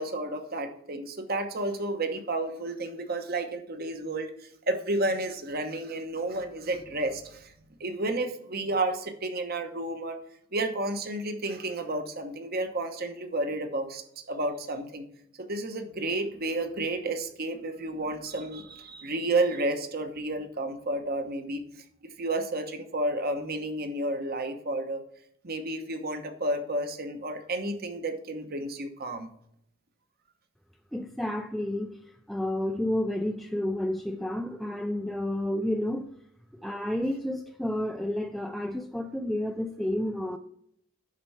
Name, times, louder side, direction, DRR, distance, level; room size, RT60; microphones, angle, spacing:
voice 1, 0.0-7.5 7.8-10.2 10.5-15.0 15.4-21.6 22.2-25.0 25.4-29.3, right 2 dB, 45° right, 1.1 m, -31 dB
voice 2, 30.9-32.0 32.3-36.1 36.6-40.4, left 1 dB, ahead, 0.3 m, -30 dB
10.5 x 4.5 x 5.6 m
head